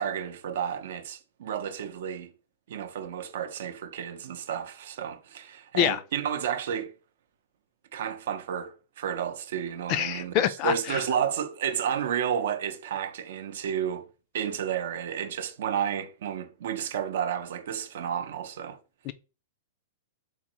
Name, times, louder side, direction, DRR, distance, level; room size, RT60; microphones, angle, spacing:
voice 1, 0.0-2.3 2.7-6.9 7.9-14.1 14.3-18.8, right 8 dB, 70° right, 0.5 m, -31 dB
voice 2, 9.9-11.0 19.0-19.1, left 12 dB, 40° left, 0.3 m, -26 dB
3.7 x 2.6 x 3.0 m
hypercardioid pair, 140°, 0 cm